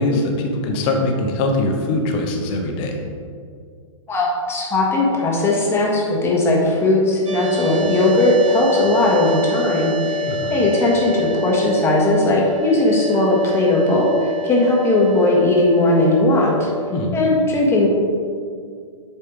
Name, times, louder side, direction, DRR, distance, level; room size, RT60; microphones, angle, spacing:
voice 1, 0.0-3.0 10.3-10.6 16.9-17.2, left 2 dB, 30° left, 3 dB, 1.0 m, -22 dB
voice 2, 4.1-16.7 17.1-17.9, left 2 dB, 15° left, -3 dB, 1.5 m, -18 dB
sound 1, 7.3-17.3, left 1 dB, 85° right, 0.7 m, -28 dB
8.1 x 3.4 x 4.9 m, 2.2 s
hypercardioid pair, 125°, 16 cm